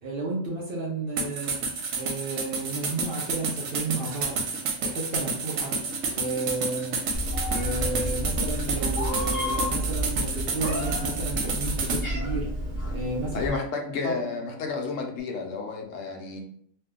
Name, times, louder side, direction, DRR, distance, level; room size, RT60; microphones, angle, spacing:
voice 1, 0.0-1.6 1.9-4.4 4.8-5.7 6.1-7.0 7.5-12.5 12.9-13.5 14.0-14.2, right 3 dB, 55° right, -2 dB, 0.7 m, -32 dB
sound 1, 1.2-12.0, right 4 dB, 80° right, 1.0 m, -30 dB
sound 2, 5.8-15.2, equal, 35° left, 0.6 m, -46 dB
Meow, 7.1-13.5, equal, 10° left, 1.0 m, -30 dB
voice 2, 13.3-16.4, left 4 dB, 75° left, 2 dB, 1.0 m, -32 dB
2.7 x 2.2 x 3.5 m, 0.64 s
omnidirectional pair, 1.4 m